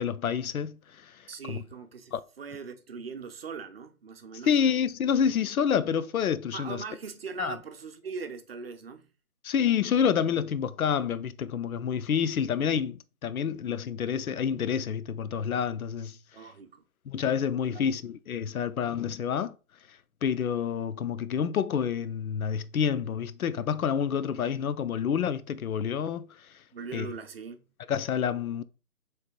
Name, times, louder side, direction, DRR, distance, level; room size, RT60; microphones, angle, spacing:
voice 1, 0.0-1.2 1.5-1.6 2.1-2.2 4.5-6.8 7.4-7.6 9.4-16.2 17.1-19.5 20.2-26.3 26.9-27.1 27.9-28.6, left 7 dB, 75° left, 0.5 m, -28 dB
voice 2, 1.3-4.5 6.5-9.1 16.3-16.8 17.7-17.9 26.7-27.6, right 5 dB, 45° right, 0.6 m, -40 dB
3.3 x 3.0 x 4.3 m
figure-of-eight pair, 145°, 43 cm